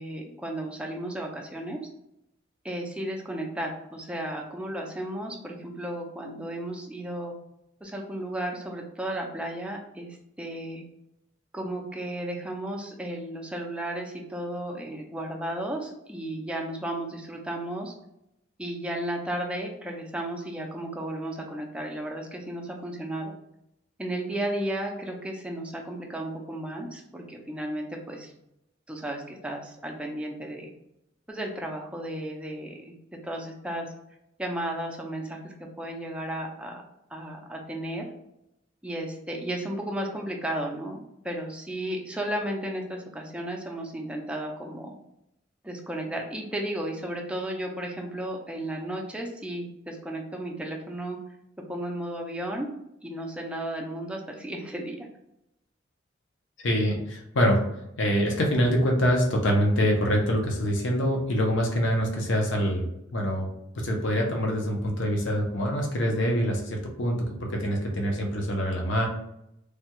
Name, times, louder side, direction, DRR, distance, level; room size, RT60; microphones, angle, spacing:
voice 1, 0.0-1.8 2.6-7.3 7.8-10.8 11.5-17.9 18.6-23.3 24.0-28.3 28.9-30.7 31.3-32.9 33.2-33.9 34.4-36.8 37.1-38.1 38.8-45.0 45.6-51.2 51.7-52.7 53.0-55.1, right 1 dB, 5° right, 0 dB, 0.5 m, -34 dB
voice 2, 56.6-57.6 58.0-63.5 63.8-69.1, equal, 70° left, 1 dB, 0.7 m, -25 dB
3.3 x 2.3 x 2.9 m, 0.82 s
head